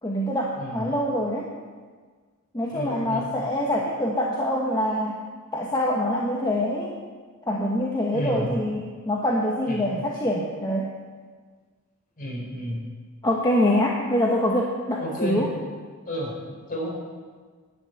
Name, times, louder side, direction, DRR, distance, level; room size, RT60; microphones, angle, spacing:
voice 1, 0.0-1.5 2.5-5.2 5.5-6.9 7.5-10.9 13.2-15.5, left 1 dB, 20° left, -3 dB, 1.2 m, -25 dB
voice 2, 2.7-3.3 8.1-8.6 9.7-10.0 12.2-12.8 15.0-15.4 16.1-16.4 16.7-16.9, equal, 40° left, -2 dB, 4.4 m, -31 dB
11.0 x 9.3 x 8.2 m, 1.5 s
head